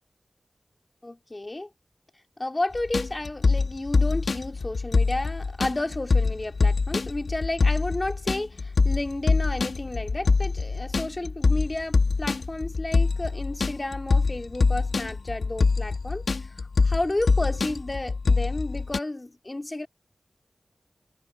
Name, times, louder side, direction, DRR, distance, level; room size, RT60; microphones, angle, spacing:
voice 1, 1.0-1.7 2.4-16.5 16.8-19.9, left 2 dB, 35° left, 2.3 m, -32 dB
sound 1, 2.7-19.0, left 4 dB, 85° left, 1.5 m, -24 dB
wide cardioid pair, 50°, 0 cm